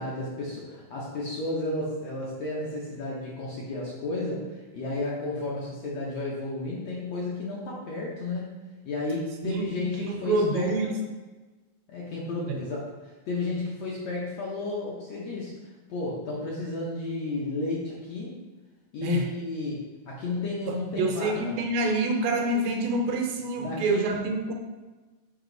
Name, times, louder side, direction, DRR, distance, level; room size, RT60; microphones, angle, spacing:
voice 1, 0.0-10.9 11.9-18.4 18.9-21.6 23.6-24.1, left 2 dB, 65° left, -5 dB, 1.8 m, -33 dB
voice 2, 10.0-11.0 12.5-12.6 19.0-19.3 20.7-24.5, right 2 dB, 75° right, 3 dB, 2.5 m, -27 dB
8.0 x 5.5 x 4.0 m, 1.2 s
omnidirectional pair, 4.2 m